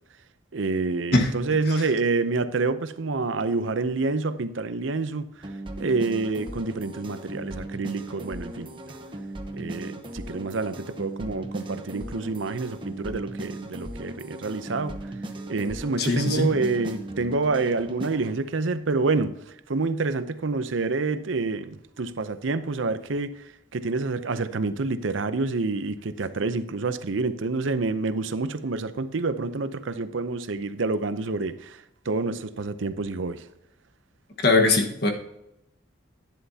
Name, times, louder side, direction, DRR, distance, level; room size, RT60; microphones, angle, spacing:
voice 1, 0.5-5.3 5.8-8.7 9.5-15.0 15.5-19.4 19.7-23.4 23.7-31.8 32.1-33.4, right 3 dB, 90° right, 0.7 m, -27 dB
sound 1, 5.4-18.3, right 1 dB, 25° right, 0.9 m, -38 dB
voice 2, 16.0-16.5 34.4-35.1, left 2 dB, 55° left, 1.5 m, -21 dB
11.0 x 10.5 x 2.8 m
head